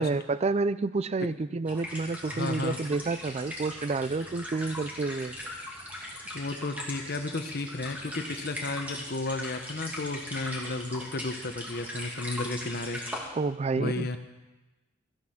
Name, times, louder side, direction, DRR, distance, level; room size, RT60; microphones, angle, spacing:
voice 1, 0.0-5.4 13.3-14.2, right 3 dB, 35° right, 16 dB, 0.4 m, -29 dB
sound 1, 1.7-13.2, left 1 dB, 10° right, 2.4 m, -39 dB
voice 2, 2.3-2.8 6.3-13.0 13.8-14.2, left 2 dB, 55° left, 7 dB, 1.1 m, -33 dB
14.5 x 9.5 x 5.8 m, 1.1 s
head